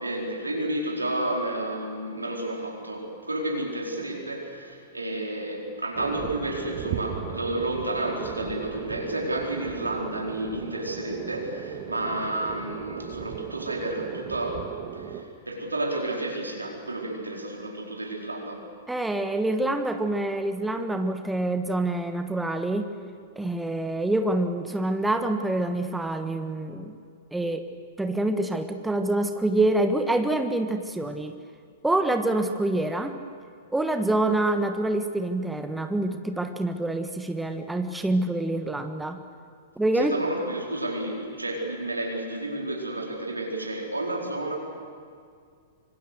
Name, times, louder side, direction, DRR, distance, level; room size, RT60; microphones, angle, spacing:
voice 1, 0.0-14.6 14.9-18.6 39.9-44.6, right 1 dB, 85° right, 0 dB, 4.4 m, -31 dB
sound 1, 5.9-15.2, right 8 dB, 40° right, 1.9 m, -36 dB
voice 2, 18.9-22.9 23.4-27.0 27.3-27.7 28.0-31.4 31.8-33.1 33.7-39.2 39.8-40.2, right 2 dB, 5° right, 7 dB, 1.3 m, -26 dB
25.5 x 25.0 x 6.5 m, 2.2 s
figure-of-eight pair, 100°, 0 cm